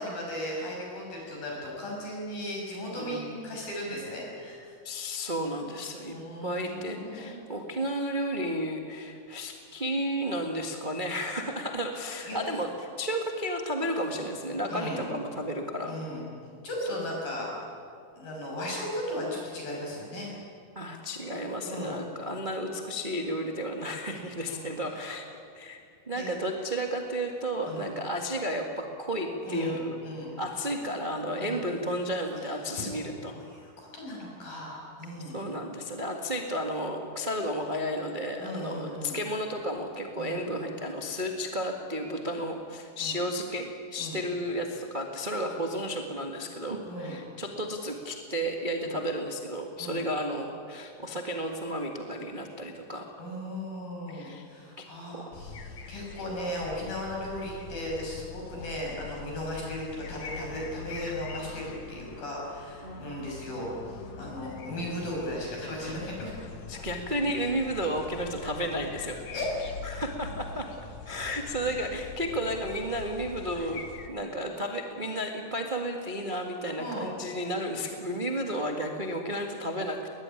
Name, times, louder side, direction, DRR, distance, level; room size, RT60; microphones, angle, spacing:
voice 1, 0.0-4.7 6.1-7.4 12.3-12.4 14.7-15.1 15.8-16.2 16.6-17.5 18.1-20.3 21.6-22.0 24.5-25.0 26.1-26.3 27.6-27.9 29.4-30.4 31.4-31.7 32.4-35.4 38.4-39.2 40.2-40.4 42.4-42.5 43.0-43.2 44.0-44.2 46.8-47.2 48.8-49.0 49.8-50.1 53.2-66.3 69.3-69.5 76.8-77.1, left 1 dB, 75° left, -2 dB, 8.4 m, -37 dB
voice 2, 4.8-6.2 6.4-12.7 13.0-15.9 20.7-25.3 25.5-25.8 26.1-30.0 30.4-33.4 35.3-53.0 54.1-54.4 54.8-54.9 55.1-55.2 61.0-61.1 62.8-63.0 66.7-69.2 69.8-70.7 71.0-80.1, equal, 25° right, 2 dB, 1.0 m, -32 dB
sound 1, 55.3-74.1, left 5 dB, 60° left, 2.7 m, -43 dB
21.0 x 20.0 x 10.0 m, 2.3 s
omnidirectional pair, 4.1 m